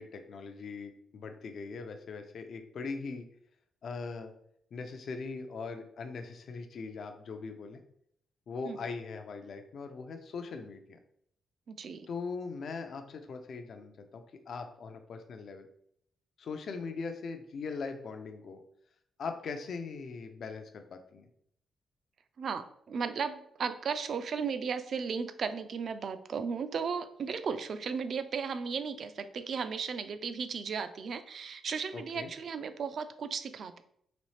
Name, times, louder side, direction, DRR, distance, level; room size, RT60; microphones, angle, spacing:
voice 1, 0.0-3.3 3.8-4.3 4.7-7.8 8.5-11.0 12.1-15.7 16.4-18.6 19.2-21.3 31.9-32.3, left 4 dB, 50° left, 6 dB, 0.4 m, -40 dB
voice 2, 11.7-12.1 22.4-33.8, right 6 dB, 45° right, 11 dB, 0.3 m, -35 dB
4.1 x 3.1 x 3.1 m, 0.70 s
wide cardioid pair, 165°, 0 cm